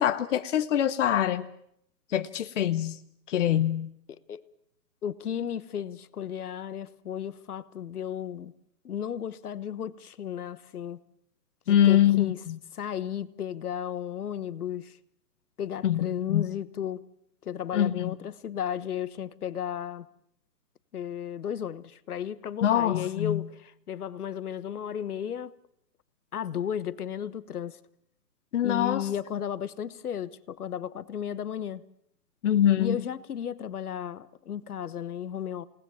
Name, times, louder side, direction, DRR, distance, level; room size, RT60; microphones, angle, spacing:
voice 1, 0.0-1.5 2.1-3.0 3.3-3.9 11.7-12.6 15.8-16.4 17.7-18.1 22.6-23.4 28.5-29.1 32.4-33.0, left 11 dB, 45° left, 1.1 m, -24 dB
voice 2, 4.1-4.4 5.0-8.5 8.8-11.0 11.7-12.4 12.7-15.0 15.6-17.0 17.4-20.1 20.9-25.5 26.3-27.8 28.6-31.8 32.8-35.7, left 9 dB, 65° left, 1.3 m, -34 dB
28.5 x 19.0 x 7.2 m
hypercardioid pair, 150°, 49 cm